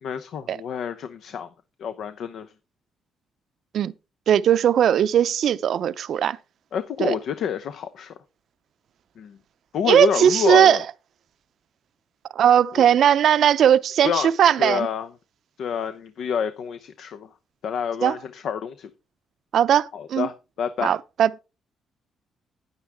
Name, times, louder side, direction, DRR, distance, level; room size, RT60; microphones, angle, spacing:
voice 1, 0.0-1.5 1.8-2.5 6.7-8.1 9.2-9.4 9.7-10.8 14.0-14.3 14.6-15.1 15.6-17.3 17.6-18.9 19.9-20.9, left 7 dB, 70° left, 0.8 m, -28 dB
voice 2, 4.3-6.4 7.0-7.2 9.9-10.8 12.3-14.9 18.0-18.2 19.5-20.3 20.8-21.4, right 9 dB, 65° right, 0.6 m, -18 dB
9.9 x 9.6 x 3.5 m
cardioid pair, 90°, 0 cm